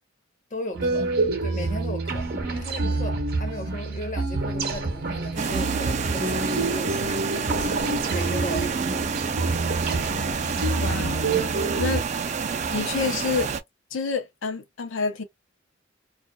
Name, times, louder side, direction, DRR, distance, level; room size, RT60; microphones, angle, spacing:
voice 1, 0.5-1.1 1.4-9.1, left 1 dB, 40° left, 0.8 m, -37 dB
Ambient Cave, 0.7-12.0, right 3 dB, 50° right, 0.7 m, -27 dB
sound 1, 5.4-13.6, right 5 dB, 35° right, 0.3 m, -28 dB
voice 2, 10.8-11.3 11.8-12.1 12.7-13.5 13.9-15.2, left 5 dB, 70° left, 0.6 m, -28 dB
2.4 x 2.2 x 2.2 m
head